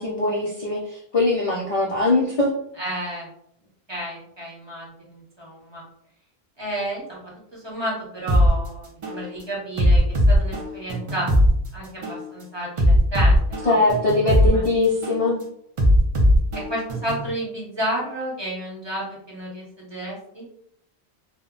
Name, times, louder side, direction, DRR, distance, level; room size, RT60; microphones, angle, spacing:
voice 1, 0.0-2.5 13.7-15.4, left 2 dB, 55° left, -3 dB, 0.4 m, -21 dB
voice 2, 2.8-3.3 3.9-5.8 6.6-11.3 11.7-13.8 14.5-14.6 16.5-20.5, right 1 dB, 25° right, -5 dB, 0.8 m, -31 dB
sound 1, 8.3-8.5 9.0-9.2 9.8-11.5 12.0-12.2 12.8-14.5 15.0-15.2 15.8-17.3, equal, 45° right, 0.4 m, -18 dB
2.1 x 2.0 x 3.6 m, 0.68 s
omnidirectional pair, 1.1 m